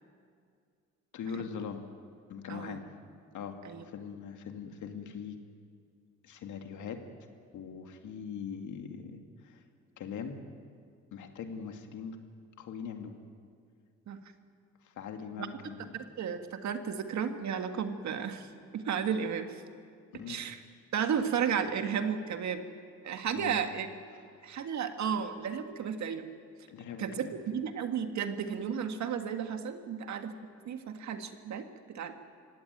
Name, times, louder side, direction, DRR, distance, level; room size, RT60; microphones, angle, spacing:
voice 1, 1.1-1.9 2.3-2.9 3.3-5.4 6.2-7.1 7.5-9.6 10.0-10.4 11.1-12.2 12.6-13.2 14.8-15.9 20.1-20.4 23.3-23.6 24.1-24.5 26.7-27.3, left 6 dB, 75° left, 5 dB, 2.3 m, -41 dB
voice 2, 2.5-2.8 3.6-3.8 14.1-14.2 15.4-15.5 15.9-18.5 18.7-19.6 20.3-20.6 20.9-22.6 23.0-23.9 24.4-26.2 27.0-30.4 30.6-32.2, right 7 dB, 65° right, 7 dB, 1.8 m, -33 dB
25.0 x 16.5 x 9.3 m, 2.2 s
cardioid pair, 90°, 30 cm